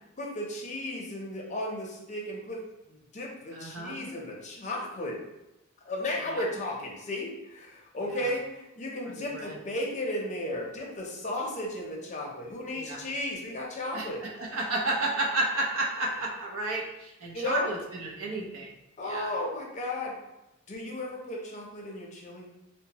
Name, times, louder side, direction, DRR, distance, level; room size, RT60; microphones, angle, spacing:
voice 1, 0.2-5.2 5.8-14.2 17.3-17.7 19.0-20.1 20.7-22.5, left 1 dB, 35° left, -1 dB, 0.6 m, -34 dB
voice 2, 3.5-4.0 6.3-6.4 8.2-8.3 9.1-9.6 12.7-13.0 13.9-18.7 19.0-19.3, right 2 dB, 75° right, -2 dB, 0.6 m, -32 dB
3.0 x 2.1 x 2.8 m, 0.91 s
head